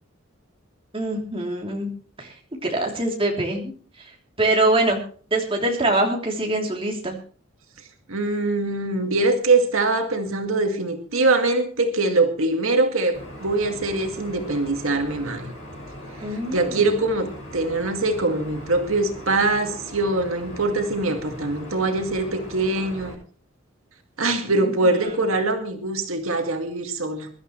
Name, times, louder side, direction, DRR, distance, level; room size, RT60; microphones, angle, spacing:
voice 1, 0.9-1.9 2.2-2.3 2.7-3.7 4.4-5.0 5.3-7.2 16.2-16.9 24.6-24.7 25.0-25.1, right 2 dB, 25° right, 0 dB, 3.1 m, -23 dB
voice 2, 8.1-15.5 16.3-23.2 24.2-27.3, right 2 dB, 85° right, 4 dB, 2.1 m, -23 dB
sound 1, 13.1-23.1, equal, 35° left, 7.6 m, -40 dB
23.0 x 12.0 x 3.2 m, 0.42 s
head